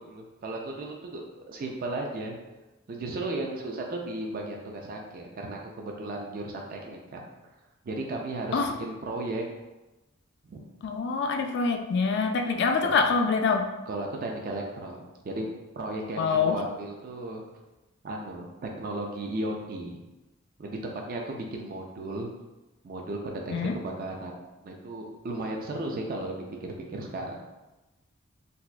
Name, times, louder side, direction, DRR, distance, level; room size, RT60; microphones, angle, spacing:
voice 1, 0.0-2.4 2.9-7.2 7.8-9.4 10.4-10.6 11.4-11.5 12.8-13.0 13.9-15.4 15.8-17.4 18.0-20.0 20.6-20.8 21.1-22.3 22.8-24.4 24.6-27.4, right 2 dB, 45° right, 0 dB, 0.4 m, -35 dB
voice 2, 10.8-13.7 16.2-16.6 23.5-23.7, left 5 dB, 55° left, 5 dB, 0.3 m, -25 dB
4.0 x 2.4 x 2.2 m, 1.0 s
head